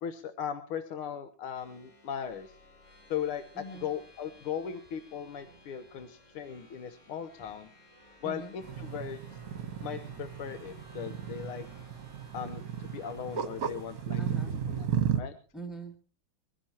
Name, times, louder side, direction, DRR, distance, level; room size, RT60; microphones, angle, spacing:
voice 1, 0.0-2.5 3.1-7.7 8.2-9.2 9.8-11.7 12.3-14.2 14.7-14.9 15.2-15.3, left 8 dB, 80° left, 9 dB, 1.8 m, -38 dB
sound 1, 1.5-14.8, left 1 dB, 20° left, 4.6 m, -57 dB
voice 2, 3.5-3.9 8.2-8.5 14.2-14.6 15.5-16.0, right 3 dB, ahead, 2 dB, 1.9 m, -43 dB
sound 2, 8.6-15.2, right 8 dB, 50° right, 1.4 m, -34 dB
23.0 x 15.0 x 2.9 m, 0.37 s
omnidirectional pair, 2.3 m